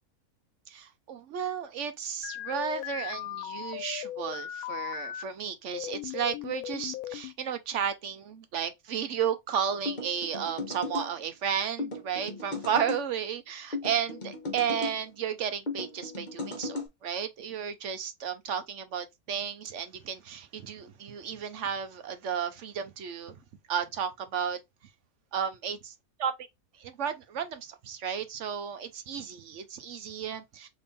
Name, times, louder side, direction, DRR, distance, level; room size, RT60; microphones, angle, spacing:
voice 1, 0.7-23.3 23.7-24.6 25.3-25.8 26.2-26.3 26.8-30.7, right 8 dB, 65° right, 0.9 m, -33 dB
sound 1, 2.2-5.2 5.7-7.3, left 13 dB, 80° left, 1.0 m, -37 dB
sound 2, 9.9-11.1 11.8-13.0 13.7-15.0 15.7-16.9, left 2 dB, 35° left, 1.1 m, -36 dB
3.5 x 3.0 x 4.1 m
omnidirectional pair, 1.5 m